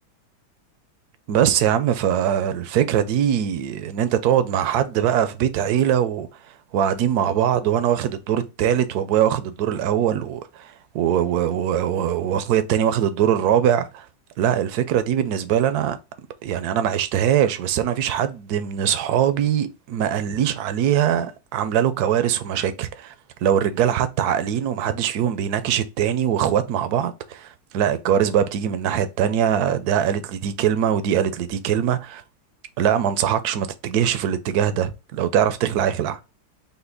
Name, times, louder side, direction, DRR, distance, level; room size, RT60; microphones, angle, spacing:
voice 1, 1.3-14.1 14.4-16.0 16.4-23.1 23.4-32.2 32.8-36.1, right 9 dB, 75° right, 0.9 m, -22 dB
5.7 x 2.1 x 3.8 m
omnidirectional pair, 2.2 m